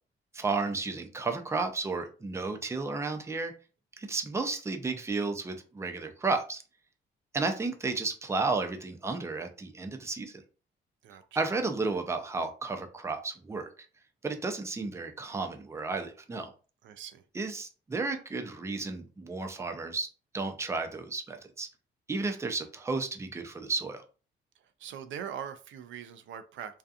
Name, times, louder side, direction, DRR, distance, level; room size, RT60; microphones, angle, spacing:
voice 1, 0.3-3.5 4.0-6.6 7.3-10.4 11.4-13.7 14.2-16.5 17.3-20.1 20.3-21.7 22.1-24.0, right 3 dB, 15° right, 5 dB, 0.5 m, -33 dB
voice 2, 11.0-11.4 16.8-17.2 24.8-26.8, right 8 dB, 75° right, 10 dB, 0.4 m, -42 dB
2.6 x 2.3 x 2.4 m, 0.36 s
cardioid pair, 90°, 20 cm